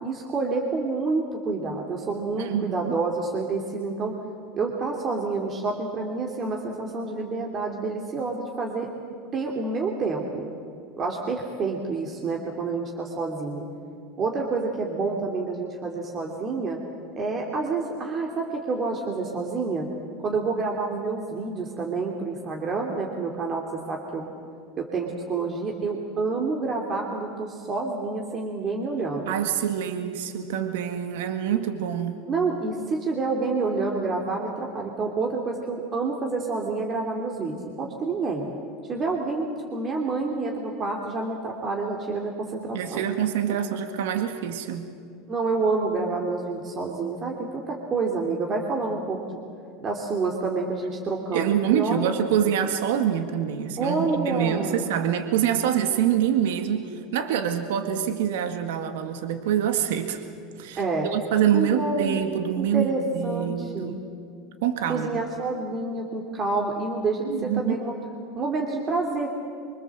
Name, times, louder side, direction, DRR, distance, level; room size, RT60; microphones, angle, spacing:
voice 1, 0.0-4.1 4.5-8.9 9.3-10.4 11.0-13.6 14.2-16.8 17.2-19.9 20.2-24.3 24.8-29.3 32.2-38.5 38.9-43.0 45.3-49.4 49.8-52.1 53.8-54.9 60.8-61.1 61.5-62.2 62.6-64.0 64.9-68.0 68.3-69.3, right 3 dB, 30° right, 0 dB, 2.9 m, -28 dB
voice 2, 2.4-2.9 29.3-32.2 42.7-44.9 51.3-60.2 60.6-60.8 61.1-64.0 64.6-65.1 67.2-67.7, right 9 dB, 80° right, 6 dB, 1.9 m, -25 dB
25.0 x 24.5 x 7.7 m, 2.4 s
supercardioid pair, 135°, 0 cm